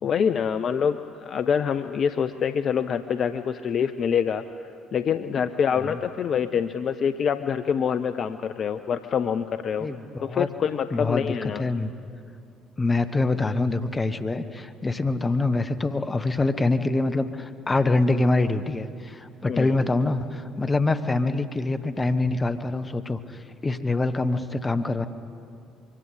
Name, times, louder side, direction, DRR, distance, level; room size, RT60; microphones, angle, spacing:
voice 1, 0.0-4.4 4.9-9.9 10.2-11.6 19.5-19.7, left 7 dB, 50° left, 10 dB, 0.6 m, -25 dB
voice 2, 9.8-10.5 10.9-11.9 12.8-25.1, left 2 dB, 25° left, 9 dB, 1.3 m, -25 dB
24.0 x 24.0 x 5.0 m, 2.5 s
hypercardioid pair, 50°, 0 cm